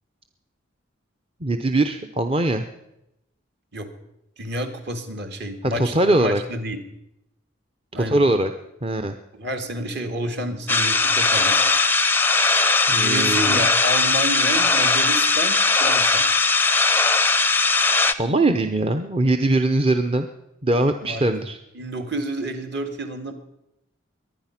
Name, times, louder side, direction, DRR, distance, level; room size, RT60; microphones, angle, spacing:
voice 1, 1.4-2.6 5.6-6.4 7.9-8.5 8.8-9.1 12.9-13.7 18.2-20.3 20.6-21.6, right 2 dB, 30° right, 6 dB, 0.7 m, -21 dB
voice 2, 4.4-6.8 7.9-8.2 9.3-11.6 12.5-12.6 12.9-16.2 21.0-21.3 21.7-23.3, right 1 dB, 55° right, 6 dB, 2.0 m, -30 dB
sound 1, 10.7-18.1, left 3 dB, 10° left, 0.5 m, -19 dB
22.5 x 9.7 x 5.8 m, 0.85 s
head